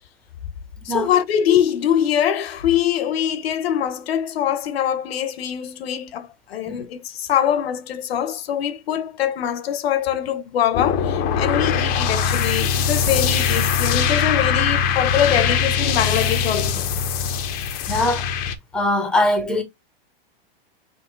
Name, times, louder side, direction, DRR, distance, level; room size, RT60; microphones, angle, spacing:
voice 1, 0.8-16.9, left 9 dB, 80° left, 0.9 m, -23 dB
sound 1, 10.7-18.5, left 7 dB, 30° left, 0.6 m, -21 dB
voice 2, 17.9-18.3 18.7-19.6, left 1 dB, 5° left, 0.9 m, -21 dB
5.8 x 2.7 x 3.2 m
supercardioid pair, 140°, 30 cm